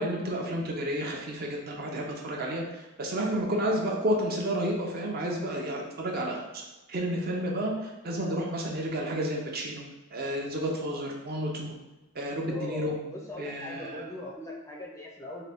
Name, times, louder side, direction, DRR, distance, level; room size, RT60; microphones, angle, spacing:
voice 1, 0.0-6.6 6.9-9.8 10.1-11.7 12.2-12.9 13.4-14.0, right 1 dB, 45° right, 0 dB, 0.6 m, -31 dB
voice 2, 12.4-15.5, left 2 dB, 15° left, -2 dB, 0.4 m, -40 dB
3.8 x 2.2 x 3.4 m, 1.1 s
head